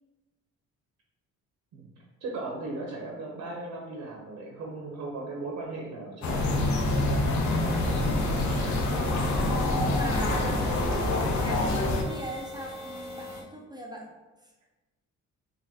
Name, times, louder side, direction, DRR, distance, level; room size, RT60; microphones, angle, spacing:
voice 1, 2.2-6.7, right 2 dB, 70° right, -1 dB, 0.8 m, -37 dB
sound 1, 6.2-12.0, left 2 dB, 70° left, 0.7 m, -26 dB
sound 2, 7.6-13.4, equal, 25° left, 1.3 m, -41 dB
sound 3, 7.7-12.6, right 1 dB, 5° left, 0.9 m, -41 dB
voice 2, 9.9-14.1, right 1 dB, 15° right, 0 dB, 0.5 m, -41 dB
3.8 x 2.5 x 2.8 m, 1.1 s
cardioid pair, 90°, 30 cm